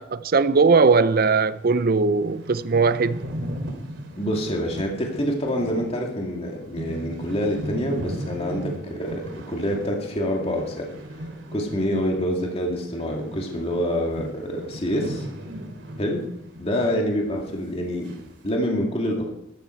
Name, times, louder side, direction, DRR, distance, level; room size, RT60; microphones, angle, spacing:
voice 1, 0.0-3.2, right 4 dB, 50° right, 0.6 m, -19 dB
sound 1, 1.4-1.5 1.8-1.9 2.1-12.3 12.6-17.0 17.3-17.4 18.0-18.5, equal, 75° right, 2.7 m, -37 dB
voice 2, 4.2-10.9 11.5-15.3 16.0-16.2 16.6-18.2 18.4-19.3, equal, 35° left, 2.3 m, -26 dB
14.5 x 13.0 x 4.5 m
head